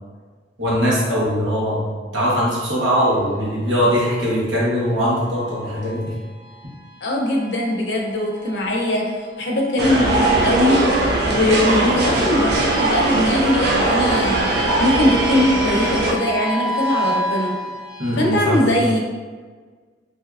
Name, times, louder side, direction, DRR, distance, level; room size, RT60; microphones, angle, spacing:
voice 1, 0.6-6.2 18.0-18.7, equal, 90° right, -7 dB, 1.1 m, -21 dB
sound 1, 3.0-18.4, right 1 dB, 5° right, 0.6 m, -32 dB
voice 2, 7.0-9.1 9.4-10.8 11.3-17.6 18.1-19.0, left 1 dB, 65° left, -1 dB, 0.6 m, -21 dB
sound 2, 9.8-16.1, right 2 dB, 60° right, 0.5 m, -20 dB
3.3 x 2.6 x 2.4 m, 1.5 s
head